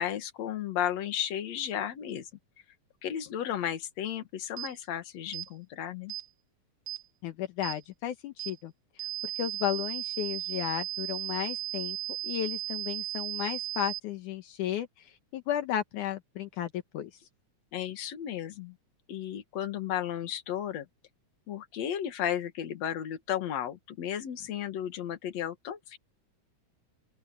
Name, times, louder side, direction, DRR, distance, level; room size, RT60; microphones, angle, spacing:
voice 1, 0.0-2.3 3.0-6.1 17.7-18.7 19.1-20.9 21.5-26.0, left 10 dB, 60° left, 2.8 m, -34 dB
sound 1, 4.6-4.7 5.3-5.5 6.1-6.3 6.9-7.0 7.6-7.8 8.4-8.6 9.0-14.0, right 15 dB, 75° right, 0.9 m, -36 dB
voice 2, 7.2-8.7 9.4-12.0 12.2-17.1, left 11 dB, 80° left, 2.6 m, -34 dB
open air
omnidirectional pair, 3.6 m